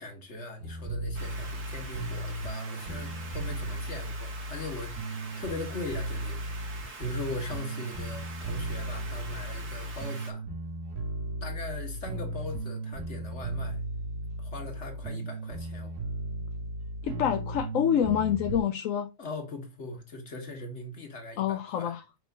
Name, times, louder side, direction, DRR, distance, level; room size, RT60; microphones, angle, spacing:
voice 1, 0.0-6.4 6.9-10.4 11.4-13.8 14.4-15.9 19.2-21.9, left 2 dB, 45° left, 1.9 m, -40 dB
sound 1, 0.6-18.6, right 1 dB, 85° right, 2.0 m, -36 dB
sound 2, 1.1-10.3, right 4 dB, 55° right, 1.9 m, -45 dB
voice 2, 17.0-19.1 21.4-22.0, left 9 dB, 65° left, 0.9 m, -27 dB
5.5 x 4.7 x 5.2 m
omnidirectional pair, 1.7 m